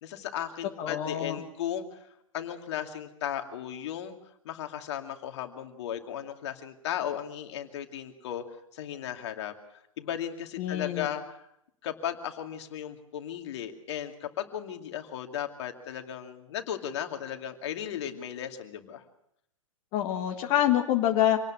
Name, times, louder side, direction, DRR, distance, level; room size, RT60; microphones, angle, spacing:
voice 1, 0.0-2.1 2.3-4.1 4.4-8.4 8.7-11.4 11.8-19.0, left 10 dB, 55° left, 5 dB, 2.5 m, -36 dB
voice 2, 0.8-1.4 10.6-11.1 19.9-21.4, left 11 dB, 35° left, 3 dB, 1.6 m, -26 dB
26.0 x 18.5 x 6.3 m, 0.75 s
figure-of-eight pair, 110°, 17 cm